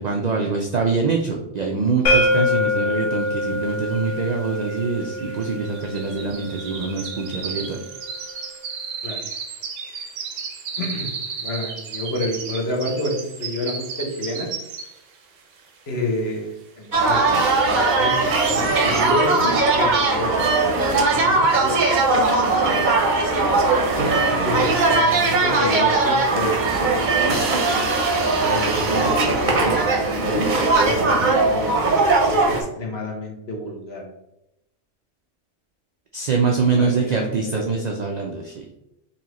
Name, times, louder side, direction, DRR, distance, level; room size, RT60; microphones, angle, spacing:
voice 1, 0.0-7.8 36.1-38.7, right 4 dB, 70° right, 1 dB, 0.4 m, -24 dB
sound 1, 2.1-7.9, left 1 dB, 75° left, 1.4 m, -25 dB
sound 2, 3.4-3.5 3.7-15.2 15.6-15.9 16.3-16.4, right 5 dB, 90° right, 1.0 m, -34 dB
voice 2, 10.8-14.5 15.9-16.5 16.8-17.2 17.6-18.1 18.4-20.4 20.9-21.9 22.1-22.2 22.6-23.0 24.2-26.6 26.9-27.4 28.2-31.8 32.3-34.0 36.8-37.6, left 1 dB, 60° left, -1 dB, 1.1 m, -29 dB
sound 3, 16.9-32.6, right 3 dB, 45° right, 0.7 m, -19 dB
4.1 x 3.0 x 2.9 m, 0.85 s
omnidirectional pair, 1.3 m